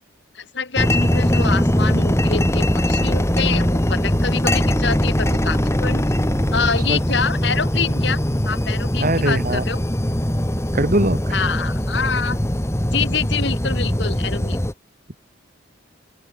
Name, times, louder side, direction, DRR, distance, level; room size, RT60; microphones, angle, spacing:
voice 1, 0.4-6.1 6.5-9.8 11.3-12.4 12.9-14.6, left 5 dB, 60° left, 1.9 m, -26 dB
sound 1, 0.8-14.7, equal, 15° left, 1.6 m, -21 dB
voice 2, 9.0-9.6 10.7-11.4, right 1 dB, 40° right, 2.4 m, -20 dB
open air
head